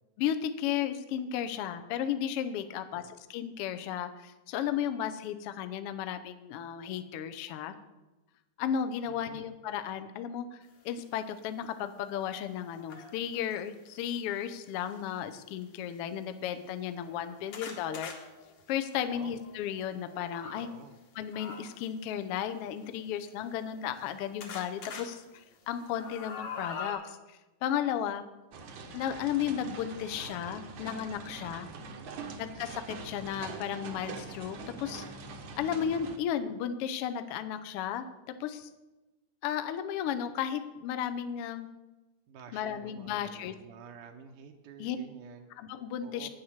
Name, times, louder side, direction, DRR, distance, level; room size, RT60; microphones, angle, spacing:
voice 1, 0.2-7.7 8.6-10.6 10.8-18.1 18.7-20.7 21.1-28.2 28.9-31.7 32.4-35.0 35.6-38.7 39.4-41.7 42.5-43.5 44.8-45.0 45.6-46.3, left 9 dB, 80° left, 9 dB, 1.3 m, -34 dB
voice 2, 2.7-3.1 9.1-9.5 19.1-19.4 20.5-21.0 31.7-32.2 42.3-45.5 46.0-46.3, right 6 dB, 85° right, 3 dB, 2.3 m, -50 dB
sound 1, 11.0-11.1 11.6-13.6 14.6-15.0 15.6-15.7 16.0-16.1 16.7-20.6 21.3-21.9 22.9-24.1 24.4-25.0 25.5-26.9, left 5 dB, 60° left, 2.6 m, -45 dB
sound 2, 28.5-36.2, right 4 dB, 65° right, 1.2 m, -43 dB
9.6 x 7.8 x 7.2 m, 1.1 s
omnidirectional pair, 3.6 m